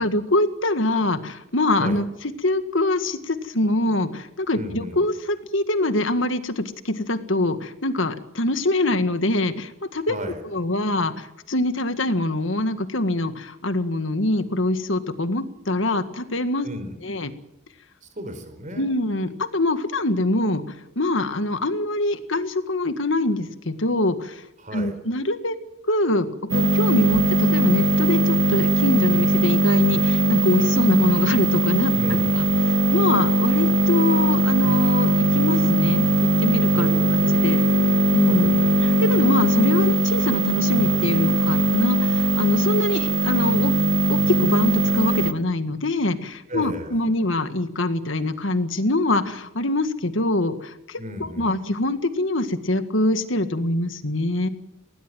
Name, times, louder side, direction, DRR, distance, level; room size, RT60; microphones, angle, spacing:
voice 1, 0.0-2.1 2.4-10.2 10.5-16.7 17.0-17.3 18.8-20.6 21.0-24.4 24.7-25.6 25.9-32.5 32.9-36.9 37.1-37.6 38.1-43.7 44.1-51.0 51.4-54.5, left 2 dB, 65° left, 10 dB, 1.8 m, -24 dB
voice 2, 4.5-5.0 10.0-10.4 16.6-16.9 18.0-18.9 24.6-25.0 31.9-32.7 36.7-37.3 38.2-38.7 46.5-47.0 51.0-51.6, equal, 35° right, 9 dB, 4.4 m, -34 dB
sound 1, 26.5-45.3, right 1 dB, 60° right, 1.3 m, -20 dB
20.0 x 18.5 x 9.3 m, 0.83 s
head